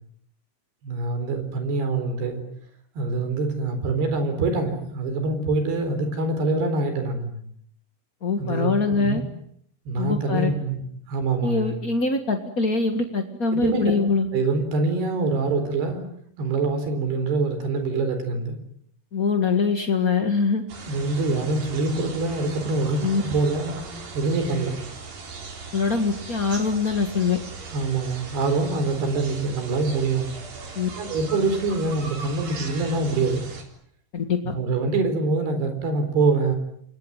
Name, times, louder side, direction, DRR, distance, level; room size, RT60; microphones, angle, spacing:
voice 1, 0.8-2.4 3.0-7.4 8.4-9.2 9.9-10.8 11.1-11.8 13.5-13.9 14.3-16.0 16.4-18.6 20.8-23.8 24.1-24.8 27.7-30.3 31.0-33.5 34.5-36.6, right 3 dB, 80° right, 8 dB, 6.2 m, -25 dB
voice 2, 8.2-9.2 10.0-10.5 11.4-14.3 19.1-20.6 23.0-23.2 25.7-27.4 30.7-30.9 34.1-34.5, left 4 dB, 45° left, 5 dB, 1.1 m, -23 dB
sound 1, 20.7-33.6, right 4 dB, 60° right, 5.7 m, -39 dB
29.5 x 22.5 x 9.0 m, 0.69 s
omnidirectional pair, 4.6 m